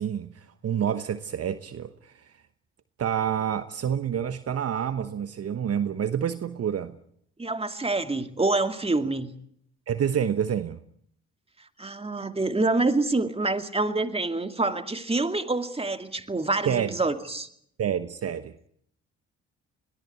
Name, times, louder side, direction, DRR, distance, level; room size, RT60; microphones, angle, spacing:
voice 1, 0.0-2.3 3.0-6.9 9.9-10.8 16.6-16.9 17.8-18.5, right 8 dB, 50° right, 1.1 m, -28 dB
voice 2, 7.4-9.3 11.8-17.5, right 2 dB, 20° right, 2.4 m, -26 dB
22.0 x 17.0 x 9.4 m
hypercardioid pair, 50°, 32 cm